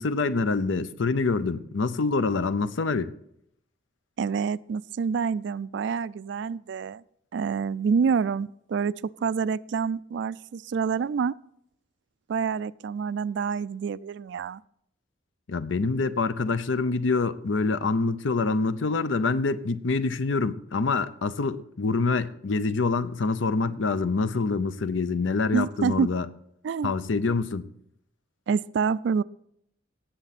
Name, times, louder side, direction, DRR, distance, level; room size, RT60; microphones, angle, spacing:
voice 1, 0.0-3.1 15.5-26.3 26.8-27.7, left 3 dB, 85° left, 0.6 m, -26 dB
voice 2, 4.2-7.0 7.3-11.3 12.3-14.6 25.5-26.1 26.6-26.9 28.5-29.2, right 6 dB, 65° right, 0.3 m, -27 dB
17.5 x 6.9 x 4.1 m
head